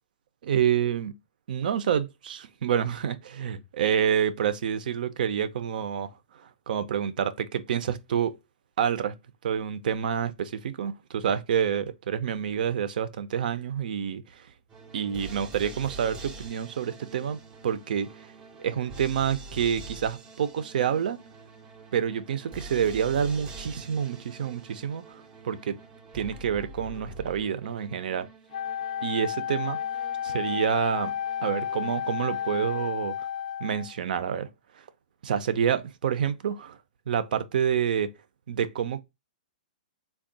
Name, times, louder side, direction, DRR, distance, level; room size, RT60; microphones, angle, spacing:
voice 1, 0.5-1.1 1.5-8.3 8.8-9.1 9.4-14.5 14.9-18.3 18.6-21.2 21.9-25.8 26.1-28.3 29.0-29.8 30.2-31.1 31.4-33.3 33.6-34.5 34.7-34.8 35.2-36.8 37.1-38.1 38.5-39.0, right 8 dB, 70° right, 0.5 m, -28 dB
sound 1, 14.7-33.2, right 3 dB, 15° right, 0.5 m, -46 dB
Wind instrument woodwind instrument, 28.5-34.0, left 9 dB, 60° left, 0.4 m, -32 dB
3.5 x 2.3 x 3.8 m
hypercardioid pair, 155°, 5 cm